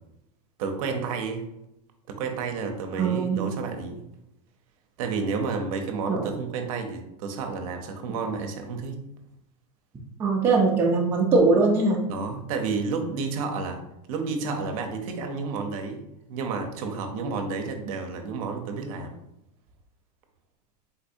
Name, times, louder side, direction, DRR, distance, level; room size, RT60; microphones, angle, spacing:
voice 1, 0.6-1.4 2.1-4.0 5.0-9.0 12.1-13.8 14.1-16.0 16.3-19.1, right 4 dB, 55° right, 4 dB, 0.6 m, -31 dB
voice 2, 3.0-3.4 6.1-6.3 10.2-12.0, right 3 dB, 10° right, -2 dB, 0.3 m, -21 dB
3.9 x 2.6 x 2.5 m, 0.84 s
supercardioid pair, 155°, 21 cm